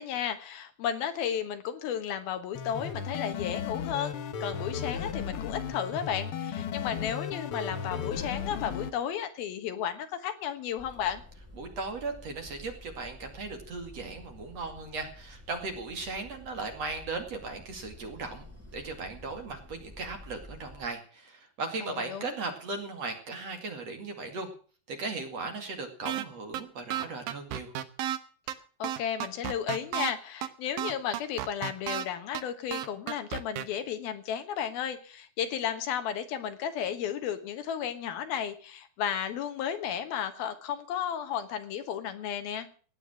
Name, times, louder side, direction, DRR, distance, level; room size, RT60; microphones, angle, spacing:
voice 1, 0.0-4.2 4.4-11.2 21.8-22.3 28.8-42.7, left 9 dB, 70° left, 9 dB, 3.0 m, -33 dB
sound 1, 2.5-8.9, left 7 dB, 90° left, 1.2 m, -35 dB
sound 2, 10.8-20.9, left 1 dB, 5° right, 2.4 m, -50 dB
voice 2, 11.6-18.5 18.7-24.5 24.9-27.7, right 3 dB, 45° right, 5 dB, 3.0 m, -37 dB
sound 3, 26.1-26.2 26.5-26.6 26.9-28.2 28.5-28.6 28.8-30.1 30.4-30.5 30.8-32.0 32.3-32.4 32.7-33.6, right 11 dB, 70° right, 2.6 m, -32 dB
17.0 x 10.0 x 6.2 m, 0.42 s
omnidirectional pair, 4.6 m